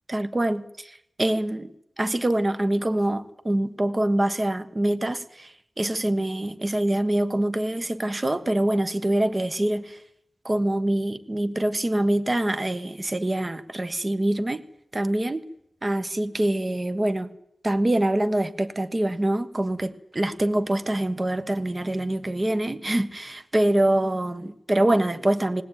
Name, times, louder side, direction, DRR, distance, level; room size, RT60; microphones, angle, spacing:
voice 1, 0.1-1.7 2.0-10.0 10.4-14.6 14.9-15.4 15.8-17.3 17.6-25.6, right 1 dB, 25° right, 1.2 m, -25 dB
19.0 x 18.5 x 9.2 m
wide cardioid pair, 120°, 0 cm